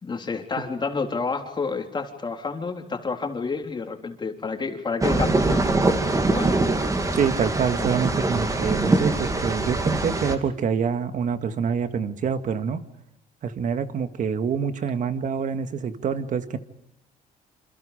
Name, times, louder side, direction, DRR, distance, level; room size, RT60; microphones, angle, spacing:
voice 1, 0.0-6.7, left 4 dB, 25° left, 4 dB, 3.8 m, -30 dB
sound 1, 5.0-10.4, right 2 dB, 20° right, 2.8 m, -23 dB
voice 2, 7.1-12.8 13.4-16.6, right 6 dB, 50° right, 9 dB, 1.9 m, -26 dB
28.0 x 27.0 x 5.1 m, 0.82 s
cardioid pair, 110°, 17 cm